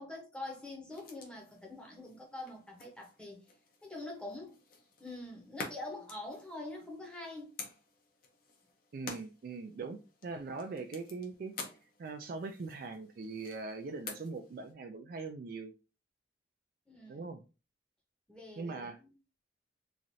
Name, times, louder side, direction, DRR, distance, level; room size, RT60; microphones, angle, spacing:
voice 1, 0.0-3.4 3.8-4.6 5.0-7.6 16.9-17.3 18.3-19.1, left 2 dB, 5° left, 0.8 m, -45 dB
sound 1, 0.9-14.7, left 4 dB, 50° left, 0.7 m, -50 dB
voice 2, 8.9-10.0 10.2-11.5 12.0-15.7 17.1-17.4 18.6-19.0, right 4 dB, 50° right, 0.3 m, -41 dB
3.1 x 2.5 x 2.6 m
head